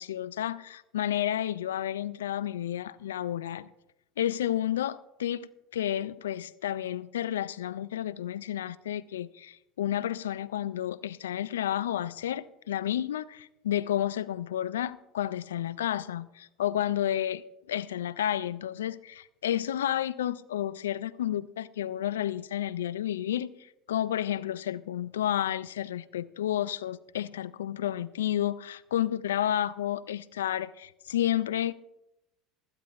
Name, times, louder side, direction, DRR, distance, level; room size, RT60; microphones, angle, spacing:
voice 1, 0.0-3.7 4.2-23.5 23.9-31.7, left 11 dB, 85° left, 0.3 m, -31 dB
18.0 x 12.5 x 2.4 m
hypercardioid pair, 75°, 0 cm